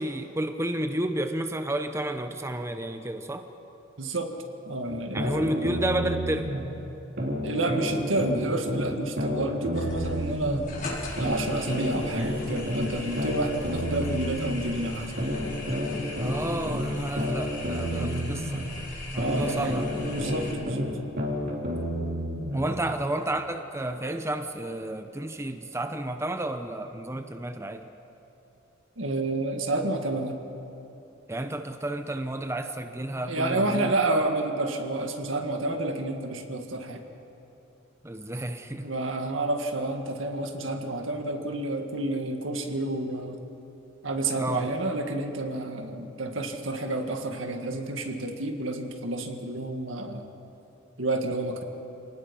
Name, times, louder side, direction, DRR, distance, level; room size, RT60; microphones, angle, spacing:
voice 1, 0.0-3.5 5.1-6.5 16.2-18.6 19.1-19.8 22.5-27.9 31.3-33.9 38.0-38.9 44.4-44.7, right 1 dB, 15° right, 7 dB, 0.8 m, -31 dB
voice 2, 4.0-4.3 4.7-5.7 7.4-10.6 11.2-15.2 17.9-18.3 19.2-20.9 21.4-21.6 29.0-30.4 33.3-37.0 38.8-43.4 44.0-50.3 51.0-51.6, right 2 dB, 85° right, 4 dB, 1.9 m, -30 dB
sound 1, 4.9-6.6 7.2-10.6 11.2-14.6 15.2-18.6 19.2-22.6, equal, 55° right, 3.4 m, -30 dB
sound 2, 9.7-20.5, left 1 dB, 45° left, 5.0 m, -39 dB
28.0 x 18.5 x 5.4 m, 2.9 s
head